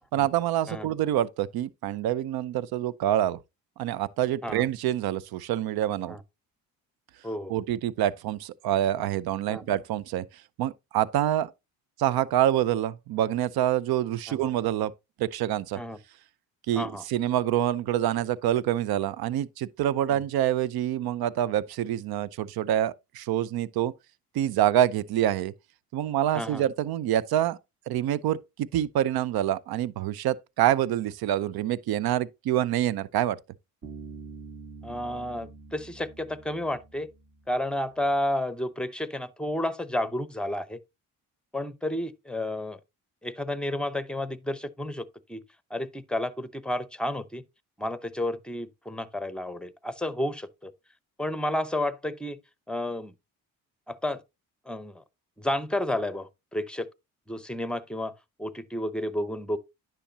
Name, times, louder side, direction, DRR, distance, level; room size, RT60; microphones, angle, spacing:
voice 1, 0.1-3.4 3.8-6.2 7.5-10.2 10.6-11.5 12.0-14.9 15.2-15.8 16.7-23.9 24.3-25.5 25.9-27.6 27.9-33.4, right 12 dB, 65° right, 0.6 m, -26 dB
Bass guitar, 33.8-37.5, right 4 dB, 45° right, 2.8 m, -45 dB
voice 2, 34.8-37.1 37.5-40.8 41.5-42.8 43.2-45.4 45.7-47.4 47.8-50.7 51.2-52.4 52.7-53.1 53.9-54.2 54.7-55.0 55.4-56.9 57.3-58.1 58.4-59.6, left 1 dB, ahead, 0.7 m, -31 dB
10.0 x 5.8 x 2.8 m
supercardioid pair, 60°, 39 cm